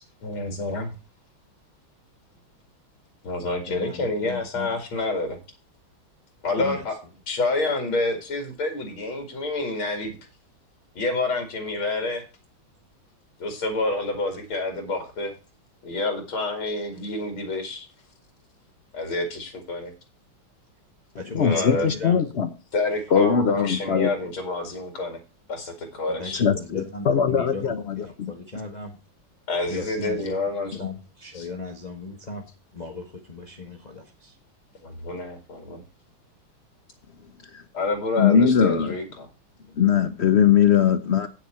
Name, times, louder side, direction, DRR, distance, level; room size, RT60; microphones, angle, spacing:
voice 1, 0.2-0.9 3.2-5.4 6.4-6.9 7.3-10.2 11.0-12.2 13.4-15.3 15.8-17.9 18.9-19.9 21.4-21.9 22.7-25.2 25.5-26.4 29.5-30.7 31.3-31.5 34.8-35.8 37.7-39.3, left 2 dB, 90° left, 5 dB, 3.0 m, -28 dB
voice 2, 3.7-4.8 6.6-6.9 21.1-22.2 26.1-29.0 29.7-30.4 30.6-32.5 32.7-34.4, left 3 dB, 25° left, 3 dB, 1.4 m, -37 dB
voice 3, 21.3-22.5 23.1-24.1 26.3-27.8 28.2-28.3 37.5-37.6 38.2-38.9 39.8-41.3, left 7 dB, 70° left, 11 dB, 0.6 m, -20 dB
9.3 x 9.1 x 4.3 m, 0.31 s
omnidirectional pair, 2.2 m